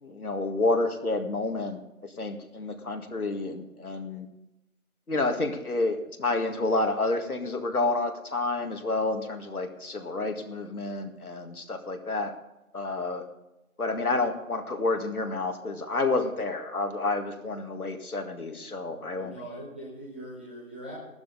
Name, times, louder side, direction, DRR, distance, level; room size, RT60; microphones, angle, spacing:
voice 1, 0.0-4.3 5.1-12.3 12.7-13.3 13.8-19.4, left 2 dB, 75° left, 4 dB, 2.2 m, -29 dB
voice 2, 18.9-20.9, right 1 dB, 10° right, -7 dB, 1.2 m, -42 dB
15.0 x 12.0 x 4.1 m, 0.93 s
figure-of-eight pair, 165°, 44 cm